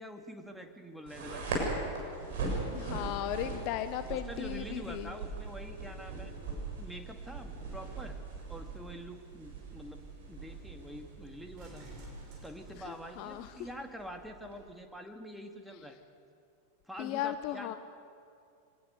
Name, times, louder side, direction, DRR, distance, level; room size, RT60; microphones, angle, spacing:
voice 1, 0.0-1.7 4.0-6.3 6.8-8.2 8.5-11.9 12.4-16.0 16.8-17.8, equal, ahead, 4 dB, 2.1 m, -46 dB
sound 1, 1.1-14.5, right 3 dB, 55° right, 7.2 m, -40 dB
voice 2, 2.6-5.2 12.8-13.7 17.0-17.8, left 12 dB, 45° left, 11 dB, 0.8 m, -37 dB
sound 2, 8.4-13.8 14.6-14.7, right 1 dB, 40° right, 6.0 m, -55 dB
25.0 x 19.0 x 6.8 m, 2.5 s
figure-of-eight pair, 90°, 0 cm